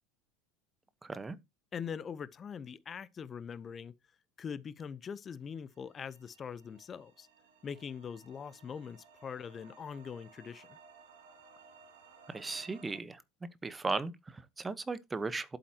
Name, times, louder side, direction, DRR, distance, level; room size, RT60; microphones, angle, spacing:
voice 1, 1.0-1.4 12.3-13.2 13.6-15.6, right 3 dB, 20° right, 1.1 m, -37 dB
voice 2, 1.7-3.9 4.4-7.3 7.6-10.8, left 7 dB, 30° left, 0.8 m, -42 dB
sound 1, 5.7-13.0, right 4 dB, 75° right, 2.7 m, -59 dB
11.0 x 8.4 x 2.9 m
hypercardioid pair, 75°, 0 cm